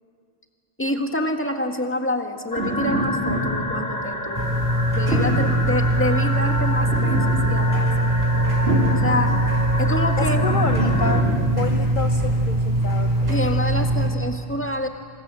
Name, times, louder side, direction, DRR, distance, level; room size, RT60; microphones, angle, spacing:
voice 1, 0.8-4.6 4.9-7.9 9.0-9.5 9.8-10.4 13.3-14.9, left 1 dB, 10° left, 4 dB, 1.8 m, -27 dB
sound 1, 2.5-11.2, left 1 dB, 80° left, 2.4 m, -29 dB
sound 2, 2.5-4.4 5.1-5.6 6.5-7.6 8.3-9.2 10.2-11.3, right 1 dB, 80° right, 4.7 m, -26 dB
sound 3, 4.3-14.1, right 1 dB, 20° right, 5.2 m, -22 dB
voice 2, 10.2-11.3 11.5-13.5, left 5 dB, 55° left, 7 dB, 1.0 m, -28 dB
27.0 x 26.5 x 7.7 m, 2.2 s
omnidirectional pair, 1.0 m